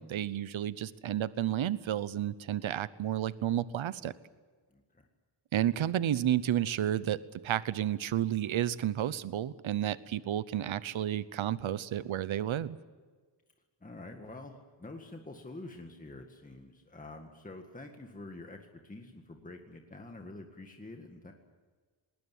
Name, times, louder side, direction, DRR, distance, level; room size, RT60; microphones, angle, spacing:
voice 1, 0.0-4.1 5.5-7.2 7.4-12.8, right 11 dB, 75° right, 16 dB, 0.9 m, -31 dB
voice 2, 4.7-5.1 13.8-21.3, left 2 dB, 15° left, 3 dB, 1.9 m, -47 dB
20.0 x 19.5 x 9.4 m, 1.4 s
wide cardioid pair, 130°, 47 cm